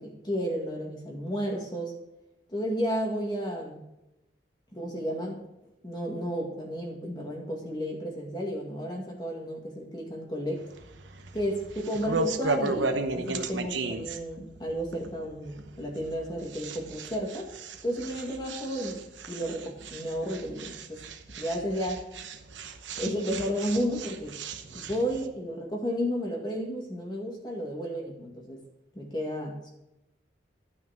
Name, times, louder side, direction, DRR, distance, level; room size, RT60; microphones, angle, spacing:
voice 1, 0.0-1.9 2.5-3.8 4.7-5.4 5.8-10.6 11.3-17.5 17.8-21.0 21.4-22.1 23.0-24.4 24.7-28.6 28.9-29.7, equal, 25° left, -1 dB, 2.0 m, -32 dB
sound 1, 10.6-25.3, right 3 dB, 85° right, 1.0 m, -35 dB
12.0 x 5.9 x 5.9 m, 0.90 s
head